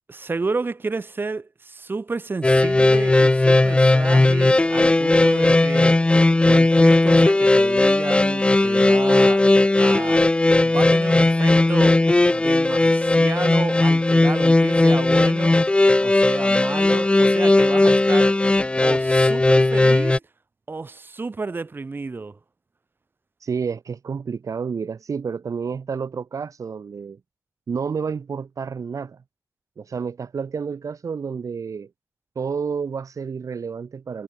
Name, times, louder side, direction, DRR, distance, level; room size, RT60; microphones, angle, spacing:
voice 1, 0.1-6.0 6.5-9.4 9.8-10.3 10.6-12.0 12.3-15.6 16.0-18.4 18.8-20.2 20.7-22.4, right 3 dB, 30° right, 6.9 m, -31 dB
sound 1, 2.4-20.2, left 2 dB, 15° left, 1.0 m, -17 dB
voice 2, 23.4-27.2 27.7-29.2 29.8-31.9 32.3-34.2, right 6 dB, 55° right, 3.4 m, -30 dB
wide cardioid pair, 145°, 7 cm